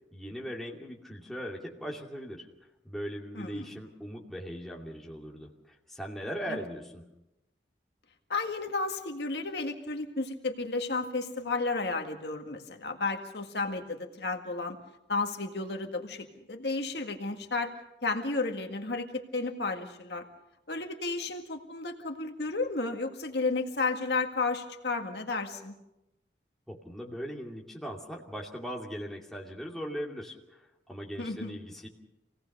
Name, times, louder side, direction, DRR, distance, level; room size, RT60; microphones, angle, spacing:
voice 1, 0.1-2.5 2.8-7.1 26.7-31.9, equal, ahead, -2 dB, 2.6 m, -39 dB
voice 2, 3.3-3.7 6.5-6.6 8.3-14.8 15.1-17.7 18.0-20.2 20.7-25.8 31.2-31.6, left 3 dB, 70° left, 4 dB, 1.9 m, -32 dB
26.5 x 18.0 x 6.7 m, 0.90 s
head